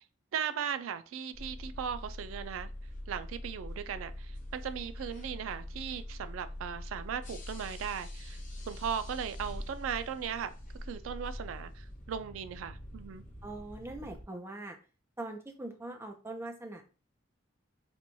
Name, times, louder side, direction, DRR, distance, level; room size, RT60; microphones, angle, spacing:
voice 1, 0.3-2.7 3.1-8.4 8.7-10.5 10.8-13.2, right 8 dB, 85° right, 0.3 m, -37 dB
sound 1, 1.3-14.3, left 1 dB, 40° left, 0.8 m, -44 dB
voice 2, 13.4-14.8 15.2-16.8, right 2 dB, 15° right, 0.5 m, -42 dB
4.3 x 2.2 x 2.6 m
head